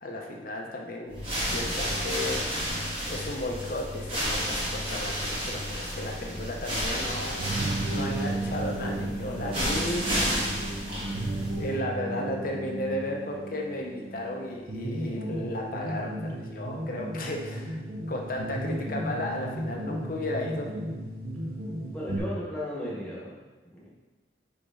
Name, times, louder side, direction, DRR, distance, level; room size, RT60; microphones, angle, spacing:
voice 1, 0.0-2.4 3.1-7.5 7.9-10.7 11.1-11.3 11.6-17.8 18.1-20.7, left 1 dB, 50° left, 0 dB, 0.6 m, -34 dB
sound 1, 1.1-11.7, equal, 30° right, 1.5 m, -31 dB
sound 2, 7.4-22.2, right 1 dB, 55° right, 0.8 m, -34 dB
voice 2, 21.9-23.3 23.7-23.9, equal, 5° left, -7 dB, 1.5 m, -35 dB
5.0 x 5.0 x 3.7 m, 1.2 s
head